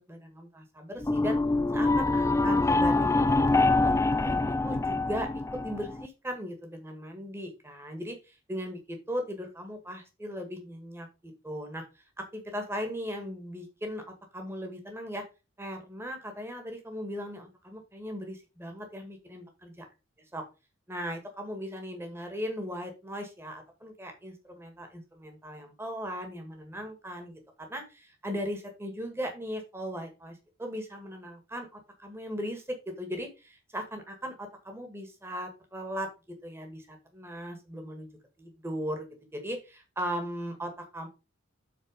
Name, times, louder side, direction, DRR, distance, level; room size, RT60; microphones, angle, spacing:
voice 1, 0.1-1.4 1.7-11.8 12.2-14.0 14.3-15.2 15.6-19.8 20.3-20.4 20.9-36.1 36.4-38.1 38.4-39.1 39.3-41.1, equal, 10° right, 4 dB, 1.8 m, -38 dB
sound 1, 1.0-6.1, left 2 dB, 15° left, 0.3 m, -25 dB
7.7 x 4.3 x 5.2 m, 0.28 s
head